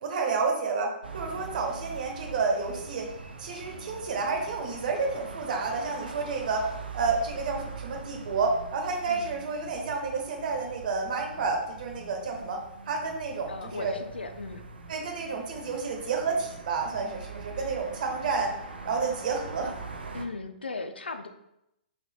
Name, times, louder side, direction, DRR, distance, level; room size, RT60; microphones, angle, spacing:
voice 1, 0.0-3.1 3.4-6.7 6.9-12.6 12.9-13.9 14.9-18.5 18.8-19.7, right 4 dB, 55° right, 2 dB, 1.1 m, -30 dB
sound 1, 1.0-20.3, right 4 dB, 75° right, 0.6 m, -42 dB
voice 2, 13.5-14.7 20.1-21.3, left 3 dB, 85° left, 7 dB, 0.4 m, -37 dB
5.1 x 3.8 x 2.3 m, 0.83 s
figure-of-eight pair, 120°, 5 cm